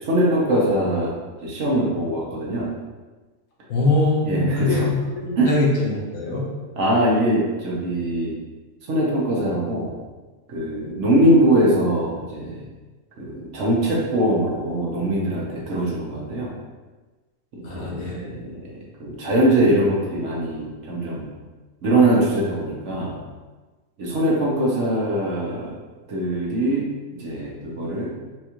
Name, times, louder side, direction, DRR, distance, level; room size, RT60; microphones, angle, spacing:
voice 1, 0.0-1.1 1.4-2.7 4.2-4.9 5.4-5.5 6.8-8.4 8.9-9.9 10.5-12.6 13.2-16.5 17.5-21.3 21.8-23.2 24.0-25.7 26.1-28.1, right 1 dB, 65° right, -3 dB, 1.1 m, -22 dB
voice 2, 3.7-6.5 17.6-18.3, left 2 dB, 75° left, -3 dB, 1.2 m, -22 dB
4.4 x 2.4 x 2.9 m, 1.3 s
omnidirectional pair, 1.4 m